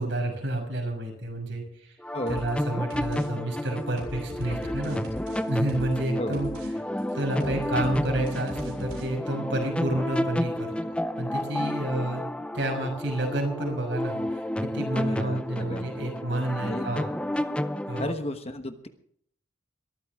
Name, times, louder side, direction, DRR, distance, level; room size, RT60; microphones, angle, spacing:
voice 1, 0.0-1.9 2.3-5.0 5.5-6.5 7.1-12.2 12.5-17.1 17.9-18.1, right 1 dB, 65° right, 2 dB, 5.9 m, -30 dB
sound 1, 2.0-18.1, left 1 dB, 5° left, 0.6 m, -31 dB
voice 2, 2.1-2.4 4.9-5.0 6.2-6.4 15.0-15.9 16.6-16.9 18.0-18.9, left 1 dB, 30° left, 8 dB, 1.2 m, -33 dB
sound 2, 2.3-2.6 2.9-3.3 3.6-6.0 6.3-6.7 7.0-9.1, equal, 85° right, 6.9 m, -40 dB
21.5 x 14.0 x 3.6 m, 0.64 s
head